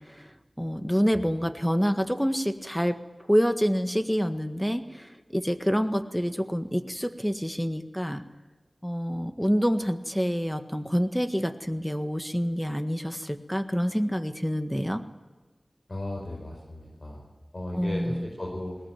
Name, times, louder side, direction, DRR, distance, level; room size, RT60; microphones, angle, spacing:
voice 1, 0.0-3.0 3.3-8.2 8.8-15.0 17.7-18.3, equal, 5° left, 8 dB, 1.6 m, -27 dB
voice 2, 15.9-17.2 17.5-18.8, left 1 dB, 50° left, -2 dB, 5.2 m, -35 dB
20.5 x 18.5 x 9.1 m, 1.3 s
wide cardioid pair, 50°, 0 cm